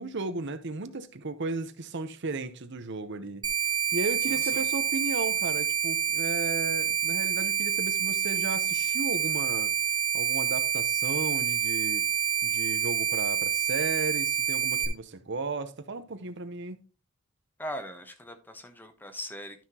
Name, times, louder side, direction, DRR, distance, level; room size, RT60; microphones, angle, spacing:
voice 1, 0.0-3.4 3.9-9.7 10.1-12.1 12.4-16.8, right 3 dB, 55° right, 0.8 m, -35 dB
sound 1, 3.4-14.9, right 8 dB, 20° right, 1.2 m, -27 dB
voice 2, 4.3-4.6 17.6-19.6, equal, 10° left, 1.0 m, -40 dB
12.5 x 5.8 x 2.9 m
head